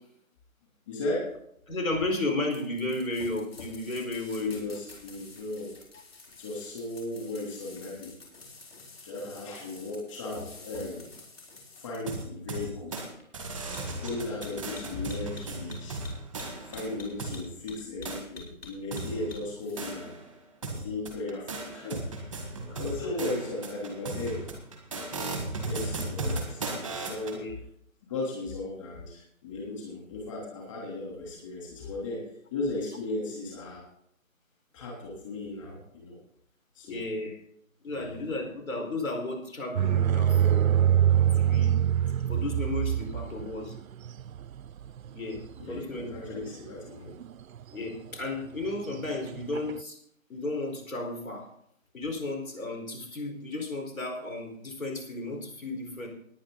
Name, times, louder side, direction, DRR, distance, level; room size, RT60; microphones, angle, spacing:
voice 1, 0.9-1.3 4.4-5.8 6.4-8.1 9.0-11.2 11.8-13.0 14.0-16.0 16.6-20.2 20.8-22.0 22.3-22.4 22.8-24.5 25.6-26.6 27.0-27.4 28.1-33.8 34.7-36.2 36.7-37.1 37.9-38.2 45.6-47.1, left 2 dB, 25° left, -3 dB, 3.2 m, -36 dB
voice 2, 1.7-4.5 22.7-23.1 27.3-27.5 36.9-37.4 37.8-40.6 41.4-41.8 42.3-43.7 45.1-46.4 47.7-50.0 50.3-51.5 51.9-56.1, left 2 dB, 75° left, 3 dB, 4.8 m, -34 dB
sound 1, 2.5-19.9, left 3 dB, 45° left, 4.0 m, -48 dB
sound 2, 12.1-13.1 13.3-17.4 18.0-18.2 18.9-20.3 20.6-27.4, right 2 dB, ahead, 1.0 m, -36 dB
sound 3, 39.8-46.5 47.2-47.6 47.9-48.0 48.5-49.8, right 10 dB, 80° right, 0.5 m, -25 dB
17.5 x 10.0 x 4.0 m, 0.70 s
hypercardioid pair, 170°, 41 cm